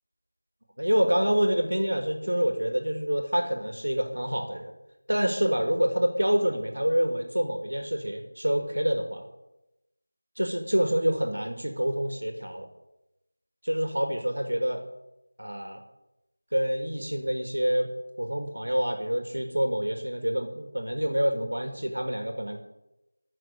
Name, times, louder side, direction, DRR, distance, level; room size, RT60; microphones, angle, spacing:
voice 1, 0.8-4.7 5.1-9.3 10.4-12.7 13.6-14.8 15.4-15.8 16.5-17.9 18.2-22.6, equal, 75° right, 5 dB, 2.2 m, -27 dB
13.0 x 6.3 x 9.5 m, 0.93 s
figure-of-eight pair, 170°, 0 cm